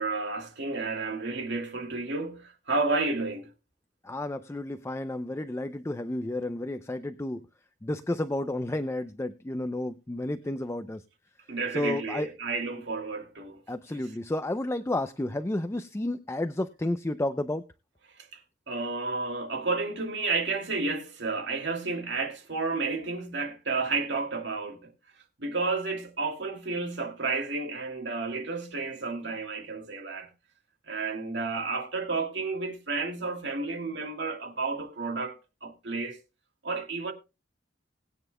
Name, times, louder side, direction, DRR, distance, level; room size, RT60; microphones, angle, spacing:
voice 1, 0.0-3.5 11.5-13.6 13.9-14.0 18.2-18.4 18.7-24.9 25.4-30.3 30.9-36.2 36.6-37.1, right 3 dB, 65° right, 2.4 m, -31 dB
voice 2, 4.0-7.5 7.8-11.0 11.7-12.3 13.7-17.6, left 1 dB, 15° left, 0.5 m, -31 dB
20.5 x 9.0 x 2.2 m
head